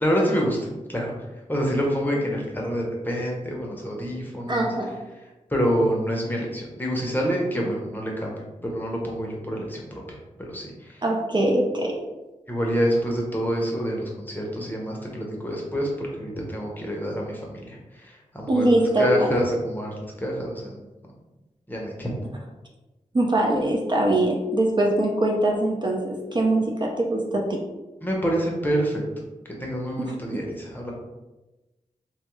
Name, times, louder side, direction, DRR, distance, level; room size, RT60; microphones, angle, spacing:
voice 1, 0.0-1.1 1.5-4.7 5.5-11.0 12.5-20.8 21.7-22.1 28.0-29.0 29.4-30.9, equal, 15° left, -2 dB, 0.7 m, -27 dB
voice 2, 4.5-5.0 11.0-11.9 18.5-19.4 23.1-27.4, right 1 dB, 35° right, -1 dB, 0.4 m, -22 dB
3.0 x 2.3 x 3.0 m, 1.1 s
wide cardioid pair, 90°, 13 cm